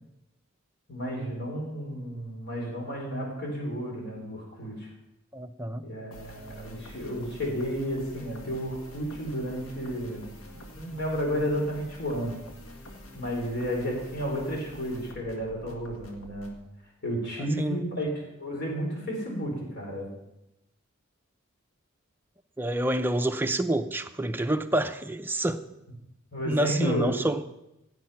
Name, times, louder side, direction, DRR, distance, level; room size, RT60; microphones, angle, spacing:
voice 1, 0.9-4.9 5.8-12.4 13.1-16.5 17.0-18.1 18.4-20.1 26.3-27.1, equal, 55° left, -1 dB, 4.2 m, -32 dB
voice 2, 5.3-5.9 17.6-17.9 22.6-25.6 26.5-27.4, right 1 dB, 10° right, 7 dB, 0.6 m, -28 dB
sound 1, 6.1-16.6, left 1 dB, 90° left, 1.9 m, -46 dB
15.0 x 8.2 x 5.8 m, 0.90 s
head